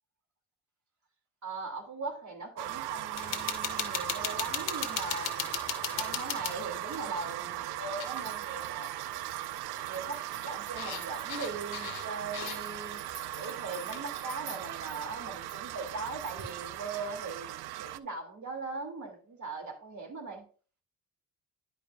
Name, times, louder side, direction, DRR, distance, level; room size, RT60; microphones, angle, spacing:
voice 1, 1.4-5.5 5.9-8.9 9.8-13.0 13.3-20.4, right 4 dB, 40° right, 2.7 m, -40 dB
sound 1, 2.6-18.0, right 14 dB, 60° right, 0.6 m, -38 dB
sound 2, 3.2-7.1 8.0-8.2 8.5-8.6 9.6-12.8 13.3-14.0, left 9 dB, 70° left, 1.3 m, -37 dB
sound 3, 8.1-16.6, right 3 dB, 85° right, 2.5 m, -50 dB
10.5 x 5.1 x 2.5 m
hypercardioid pair, 55°, 45 cm